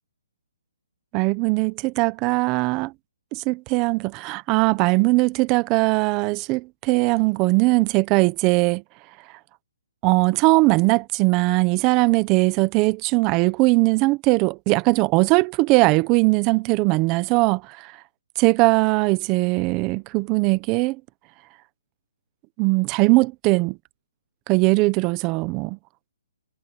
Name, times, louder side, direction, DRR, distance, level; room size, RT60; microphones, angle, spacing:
voice 1, 1.1-2.9 3.3-8.8 10.0-18.0 18.4-21.0 22.6-23.8 24.5-25.8, right 24 dB, 25° right, 1.1 m, -20 dB
hypercardioid pair, 155°, 0 cm